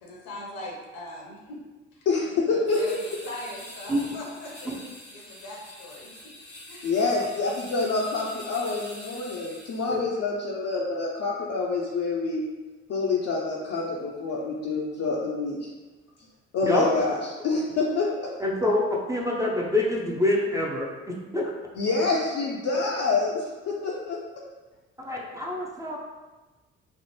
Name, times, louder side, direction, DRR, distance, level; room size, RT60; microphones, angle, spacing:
voice 1, 0.0-1.6 1.9-6.3 6.7-6.9, left 1 dB, 65° left, -2 dB, 0.8 m, -41 dB
voice 2, 2.1-3.0 6.8-12.4 12.9-15.7 16.5-18.1 21.8-24.2, left 3 dB, 45° left, -3 dB, 0.5 m, -27 dB
sound 1, 2.7-10.0, left 1 dB, 85° left, 1.3 m, -45 dB
voice 3, 18.4-21.5 25.0-26.0, left 1 dB, 10° right, -3 dB, 0.5 m, -26 dB
3.2 x 2.0 x 3.0 m, 1.2 s
figure-of-eight pair, 45°, 35 cm